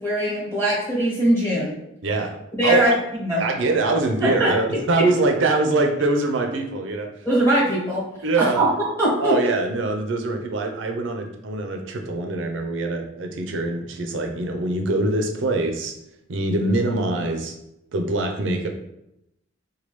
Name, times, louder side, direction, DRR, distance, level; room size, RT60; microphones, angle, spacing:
voice 1, 0.0-1.8 2.5-2.9 3.2-3.4 4.2-4.5 7.2-8.0 8.4-9.3, right 1 dB, 10° left, -7 dB, 1.1 m, -21 dB
voice 2, 2.0-2.4 2.6-3.0 3.4-7.1 8.2-8.7 9.2-15.9 16.3-17.5 17.9-18.7, right 2 dB, 65° right, 4 dB, 0.5 m, -23 dB
3.2 x 2.2 x 3.1 m, 0.82 s
head